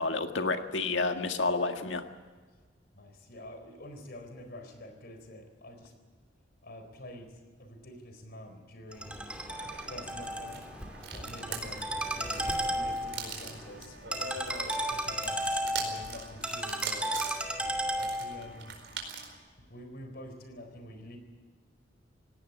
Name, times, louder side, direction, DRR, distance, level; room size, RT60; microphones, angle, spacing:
voice 1, 0.0-2.0, left 3 dB, 75° left, 6 dB, 1.8 m, -29 dB
voice 2, 2.9-6.0 6.6-9.3 9.9-10.7 11.1-14.3 14.8-17.3 18.0-18.8 19.7-21.2, left 1 dB, 60° left, 7 dB, 4.2 m, -47 dB
Ringtone, 8.9-18.5, right 1 dB, 5° right, 2.6 m, -34 dB
sound 1, 9.5-19.4, right 5 dB, 70° right, 4.7 m, -42 dB
18.5 x 17.5 x 8.9 m, 1.4 s
head